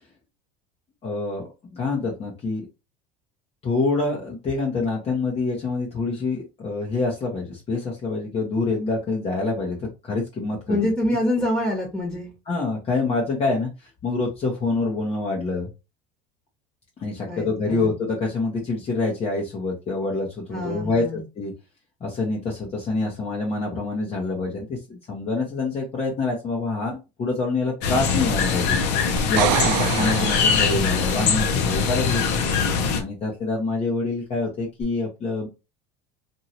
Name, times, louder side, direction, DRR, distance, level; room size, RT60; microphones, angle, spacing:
voice 1, 1.0-1.4 1.7-2.7 3.6-10.9 12.5-15.7 17.0-21.5 22.0-28.8 29.3-32.5 33.0-35.5, left 3 dB, 30° left, -1 dB, 1.0 m, -26 dB
voice 2, 10.7-12.3 17.3-17.9 20.5-21.2, left 1 dB, 5° left, -4 dB, 1.2 m, -26 dB
sound 1, 27.8-33.0, left 5 dB, 60° left, 0.9 m, -22 dB
sound 2, 29.2-31.1 34.8-34.9, right 12 dB, 65° right, 0.4 m, -26 dB
2.8 x 2.7 x 2.9 m, 0.27 s
supercardioid pair, 105°, 20 cm